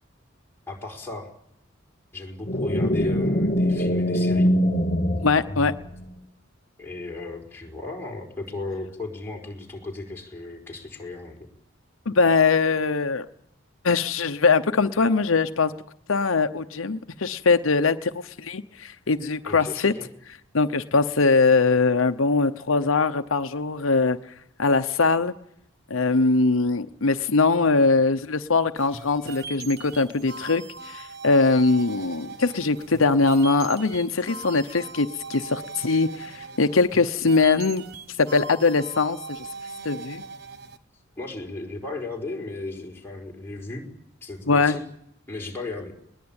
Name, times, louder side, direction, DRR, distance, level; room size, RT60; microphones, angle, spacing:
voice 1, 0.7-1.3 2.1-4.5 6.8-11.4 19.4-20.1 41.2-43.8 44.2-44.8 45.3-45.9, left 2 dB, 10° left, -2 dB, 4.6 m, -35 dB
sound 1, 2.5-6.1, equal, 35° left, 1.1 m, -23 dB
voice 2, 5.2-5.7 12.1-13.2 13.8-15.7 16.1-19.9 20.5-24.2 24.6-25.3 25.9-30.6 30.9-37.8 38.2-39.5 39.8-40.2 44.5-44.8, left 4 dB, 85° left, 9 dB, 0.9 m, -21 dB
sound 2, 28.8-40.8, right 4 dB, 55° right, 1.3 m, -40 dB
21.0 x 20.5 x 8.9 m, 0.74 s
head